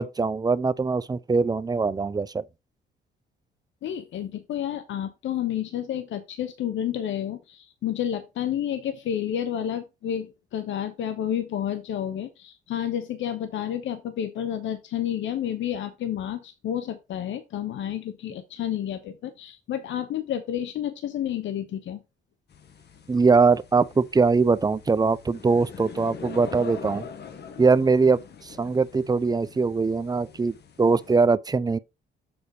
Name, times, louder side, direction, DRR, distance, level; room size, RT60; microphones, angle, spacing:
voice 1, 0.0-2.4 23.1-27.1 27.6-31.8, right 4 dB, 20° right, 0.5 m, -22 dB
voice 2, 3.8-22.0, left 10 dB, 70° left, 0.9 m, -30 dB
sound 1, 22.5-31.3, left 6 dB, 55° left, 1.3 m, -43 dB
7.1 x 4.0 x 4.8 m
cardioid pair, 90°, 20 cm